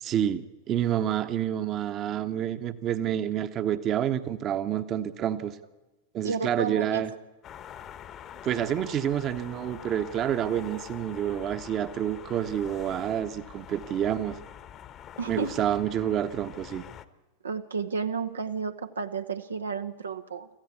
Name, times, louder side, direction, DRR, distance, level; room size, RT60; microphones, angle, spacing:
voice 1, 0.0-5.6 6.1-7.1 8.4-14.4 15.3-16.8, right 10 dB, 30° right, 11 dB, 1.1 m, -28 dB
voice 2, 6.2-7.2 15.2-15.6 17.4-20.5, right 5 dB, 70° right, 8 dB, 1.0 m, -32 dB
sound 1, 7.4-17.1, left 10 dB, 30° left, 1.1 m, -45 dB
25.5 x 15.0 x 8.4 m, 1.1 s
figure-of-eight pair, 90°, 0 cm